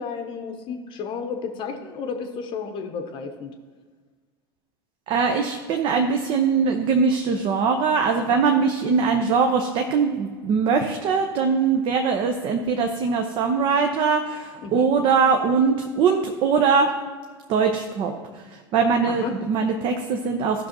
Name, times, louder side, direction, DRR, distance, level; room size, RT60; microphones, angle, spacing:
voice 1, 0.0-3.5 14.6-14.9 19.0-19.3, left 5 dB, 40° left, 5 dB, 0.8 m, -32 dB
voice 2, 5.1-16.9 17.5-20.7, right 5 dB, 40° right, 4 dB, 0.7 m, -22 dB
15.0 x 6.2 x 2.9 m, 1.5 s
figure-of-eight pair, 80°, 13 cm